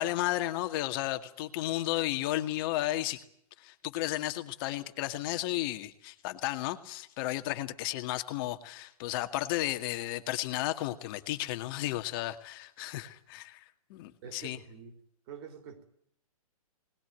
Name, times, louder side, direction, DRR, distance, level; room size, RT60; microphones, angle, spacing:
voice 1, 0.0-3.2 3.6-13.6 13.9-14.6, left 15 dB, 35° left, 9 dB, 2.0 m, -33 dB
voice 2, 14.2-15.0 15.3-15.8, right 7 dB, 40° right, 9 dB, 4.1 m, -46 dB
21.5 x 20.0 x 9.4 m, 0.69 s
hypercardioid pair, 130°, 19 cm